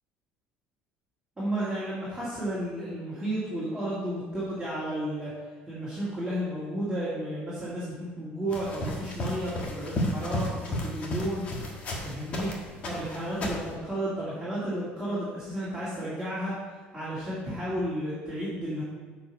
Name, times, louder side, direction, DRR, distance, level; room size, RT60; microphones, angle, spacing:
voice 1, 1.4-5.3 5.7-11.7 12.0-12.5 12.9-16.6 16.9-18.8, right 1 dB, 5° right, -11 dB, 2.2 m, -32 dB
sound 1, 8.5-12.5 12.8-13.7, left 1 dB, 30° left, 1.4 m, -33 dB
8.7 x 4.9 x 5.8 m, 1.5 s
cardioid pair, 180°, 4 cm